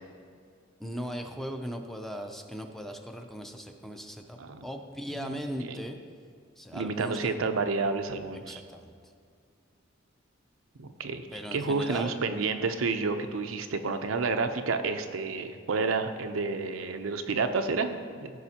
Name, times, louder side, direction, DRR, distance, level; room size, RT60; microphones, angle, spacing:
voice 1, 0.8-6.0 6.6-7.4 8.3-8.9 11.3-12.2, equal, ahead, 4 dB, 0.4 m, -38 dB
voice 2, 6.7-8.6 10.8-18.3, right 4 dB, 85° right, 7 dB, 0.5 m, -30 dB
15.0 x 5.0 x 2.8 m, 2.2 s
head